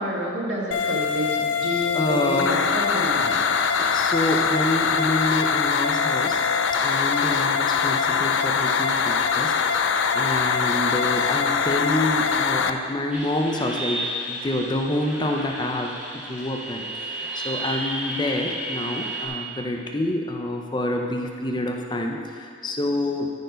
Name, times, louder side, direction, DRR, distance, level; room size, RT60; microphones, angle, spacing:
voice 1, 0.0-3.4 3.6-4.1, right 1 dB, 75° right, -3 dB, 1.9 m, -30 dB
sound 1, 0.7-12.7, left 6 dB, 75° left, 0.4 m, -23 dB
voice 2, 1.9-2.6 3.8-6.4 6.8-23.3, left 1 dB, 25° left, 2 dB, 0.5 m, -27 dB
sound 2, 13.1-19.3, right 1 dB, 5° right, 1.6 m, -32 dB
13.0 x 4.6 x 5.1 m, 2.4 s
head